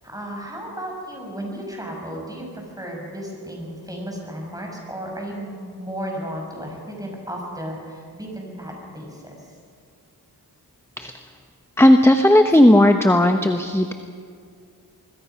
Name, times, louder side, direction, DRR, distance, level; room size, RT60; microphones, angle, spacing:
voice 1, 0.0-9.3 12.5-12.6, equal, 10° right, 0 dB, 6.1 m, -34 dB
voice 2, 11.8-13.9, left 1 dB, 5° left, 7 dB, 0.9 m, -14 dB
25.0 x 21.5 x 5.8 m, 2.3 s
wide cardioid pair, 85°, 39 cm